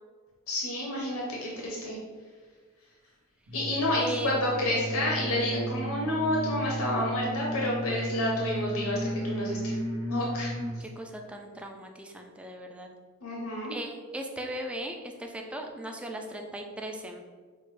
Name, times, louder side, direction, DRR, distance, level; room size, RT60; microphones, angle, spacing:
voice 1, 0.5-2.0 3.5-9.7 10.1-10.5 13.2-13.7, left 1 dB, 70° left, -3 dB, 0.7 m, -29 dB
sound 1, 3.5-10.8, right 1 dB, 80° right, 0.8 m, -34 dB
voice 2, 4.0-4.4 10.8-12.9 13.7-17.2, right 1 dB, 5° right, 2 dB, 0.3 m, -38 dB
5.9 x 2.1 x 3.2 m, 1.5 s
head